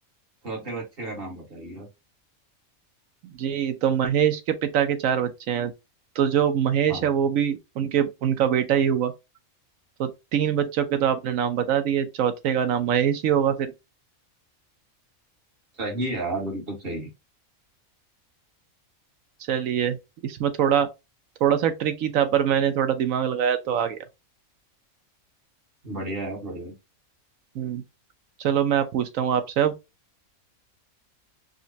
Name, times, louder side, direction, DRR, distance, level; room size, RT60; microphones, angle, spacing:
voice 1, 0.4-1.9 6.9-7.0 15.8-17.1 25.8-26.7, right 2 dB, 45° right, 1.6 m, -32 dB
voice 2, 3.2-5.7 6.2-9.1 10.0-13.7 19.5-20.0 20.2-20.9 21.4-24.0 27.5-27.8 28.4-29.7, right 9 dB, 70° right, 1.0 m, -23 dB
5.1 x 2.2 x 2.7 m
omnidirectional pair, 1.5 m